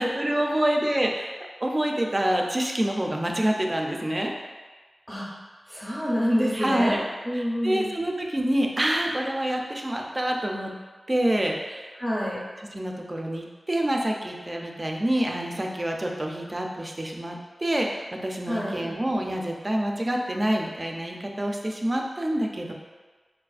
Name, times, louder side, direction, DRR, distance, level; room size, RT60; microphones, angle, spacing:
voice 1, 0.0-1.3 1.6-4.3 6.5-7.0 7.3-10.7 11.1-11.9 12.7-22.7, right 1 dB, 30° right, 1 dB, 0.4 m, -27 dB
voice 2, 5.7-7.9 12.0-12.4 18.5-18.9, equal, 10° left, -6 dB, 0.6 m, -27 dB
4.1 x 2.4 x 2.4 m, 1.3 s
wide cardioid pair, 70°, 0 cm